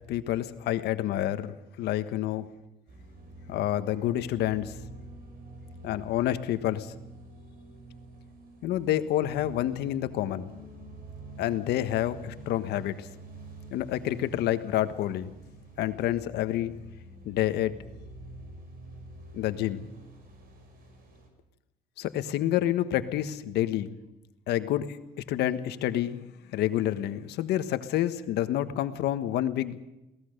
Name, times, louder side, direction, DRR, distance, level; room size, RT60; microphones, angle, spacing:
voice 1, 0.1-2.5 3.5-4.7 5.8-6.9 8.6-10.5 11.4-13.1 13.7-15.3 15.8-16.7 17.2-17.7 19.3-19.8 22.0-24.0 24.5-25.0 25.3-26.3 26.5-29.9, left 12 dB, 80° left, 11 dB, 1.4 m, -28 dB
sound 1, 2.9-21.3, right 2 dB, 60° right, 5.4 m, -47 dB
22.5 x 18.0 x 6.6 m, 0.95 s
cardioid pair, 110°, 17 cm